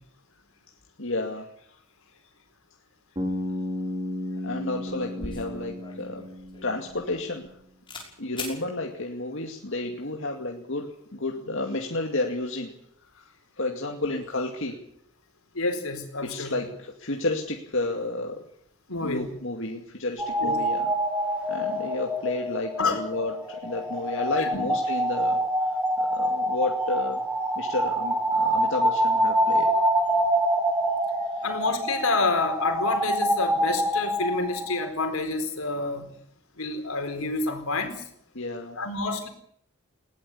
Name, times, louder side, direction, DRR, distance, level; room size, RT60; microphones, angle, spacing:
voice 1, 1.0-1.8 4.4-6.3 6.6-7.5 8.2-12.7 13.1-13.2 13.6-14.8 16.2-18.4 19.0-20.9 21.5-25.4 26.0-27.2 27.6-29.7 31.3-31.4 38.3-38.8, left 2 dB, 60° left, 1 dB, 2.4 m, -31 dB
Bass guitar, 3.2-7.2, left 1 dB, 25° right, 5.3 m, -33 dB
sound 1, 5.0-7.5 7.9-8.1 8.4-8.6, left 3 dB, 25° left, 5.8 m, -40 dB
voice 2, 15.5-16.5 18.9-19.3 20.4-20.5 22.8-23.0 24.4-24.7 31.4-36.1 36.6-38.0 38.8-39.3, left 3 dB, 85° left, 6 dB, 4.5 m, -28 dB
sound 2, 20.2-34.9, right 1 dB, 5° right, 2.0 m, -26 dB
20.5 x 18.5 x 8.5 m, 0.68 s
head